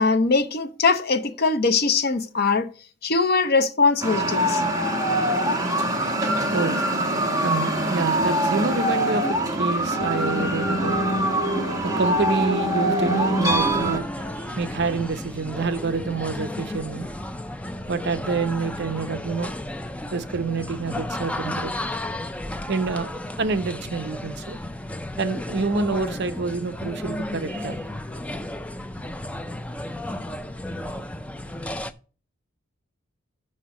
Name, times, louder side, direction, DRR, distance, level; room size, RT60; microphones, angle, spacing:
voice 1, 0.0-2.7 3.0-4.6, left 4 dB, 50° left, 0.7 m, -21 dB
sound 1, 4.0-14.0, right 1 dB, 15° right, 1.1 m, -23 dB
voice 2, 6.5-6.8 7.4-17.1 17.9-19.5 20.1-21.7 22.7-24.6 25.2-27.9, right 4 dB, 55° right, 0.6 m, -28 dB
sound 2, 13.5-31.9, left 1 dB, 5° left, 0.3 m, -33 dB
6.5 x 6.0 x 6.0 m
head